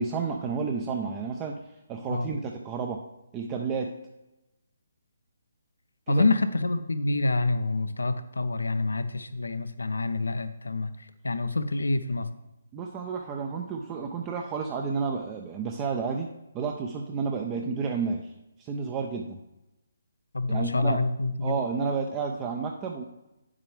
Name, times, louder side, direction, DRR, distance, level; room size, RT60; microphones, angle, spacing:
voice 1, 0.0-1.6 1.9-3.0 3.3-3.9 6.1-6.3 12.7-16.3 16.5-18.3 18.6-19.4 20.5-21.0 21.4-23.0, right 5 dB, 20° right, 2 dB, 0.6 m, -31 dB
voice 2, 6.1-12.3 20.3-21.6, left 2 dB, 85° left, 11 dB, 0.7 m, -27 dB
9.0 x 7.4 x 3.3 m, 0.95 s
figure-of-eight pair, 145°, 0 cm